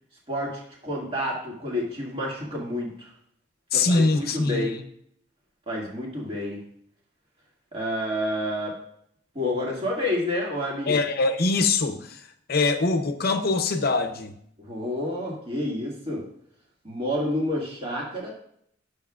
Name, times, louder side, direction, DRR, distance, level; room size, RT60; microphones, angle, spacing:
voice 1, 0.3-3.1 3.7-4.8 5.7-6.6 7.7-8.8 9.3-11.0 14.6-16.2 16.8-18.3, left 1 dB, 30° right, -4 dB, 2.1 m, -29 dB
voice 2, 3.7-4.7 10.9-12.2 12.5-14.3, left 3 dB, 50° left, 7 dB, 0.7 m, -23 dB
11.5 x 6.6 x 2.4 m, 0.68 s
head